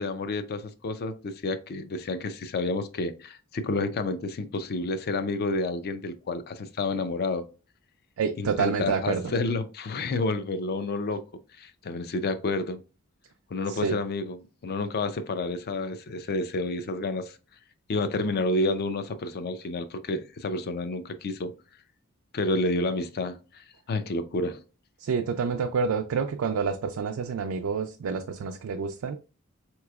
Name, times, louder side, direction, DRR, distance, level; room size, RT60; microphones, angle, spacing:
voice 1, 0.0-7.5 8.4-11.2 11.6-12.8 13.5-17.4 17.9-21.5 22.3-24.6, left 2 dB, 45° left, 0.4 m, -30 dB
voice 2, 8.2-9.3 13.7-14.0 25.0-29.2, right 5 dB, 70° right, 0.4 m, -28 dB
4.0 x 3.0 x 2.3 m
head